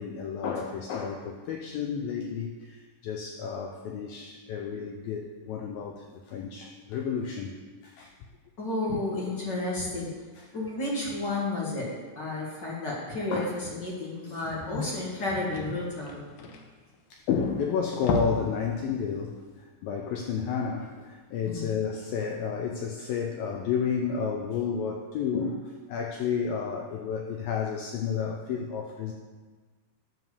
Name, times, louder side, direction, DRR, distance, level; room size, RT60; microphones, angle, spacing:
voice 1, 0.0-7.6 7.8-8.1 8.9-9.0 10.4-10.5 13.3-13.5 17.1-29.1, left 6 dB, 90° left, 3 dB, 2.0 m, -31 dB
voice 2, 8.6-10.1 10.5-16.2 21.4-21.7, left 2 dB, 45° left, -5 dB, 1.4 m, -32 dB
sound 1, 15.4-17.4 17.8-18.6 18.9-19.1 19.5-19.6, left 2 dB, 70° left, 2.2 m, -34 dB
11.5 x 4.7 x 6.9 m, 1.4 s
omnidirectional pair, 4.9 m